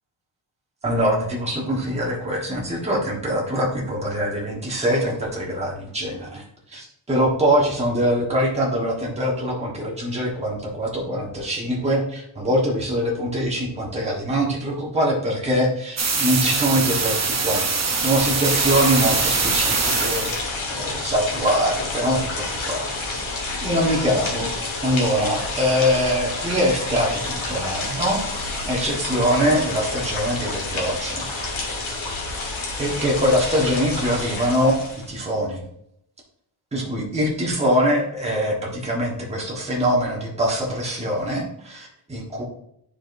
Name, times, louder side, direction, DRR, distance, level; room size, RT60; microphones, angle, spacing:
voice 1, 0.8-6.4 6.7-17.6 18.0-20.3 20.7-23.1 23.6-24.5 24.8-31.6 32.8-34.8 35.1-35.6 36.7-42.4, equal, 15° right, -4 dB, 1.3 m, -23 dB
sound 1, 16.0-20.4, right 4 dB, 35° right, 0.8 m, -23 dB
sound 2, 17.5-35.1, left 3 dB, 75° left, 1.8 m, -29 dB
10.0 x 5.0 x 2.6 m, 0.74 s
wide cardioid pair, 180°, 47 cm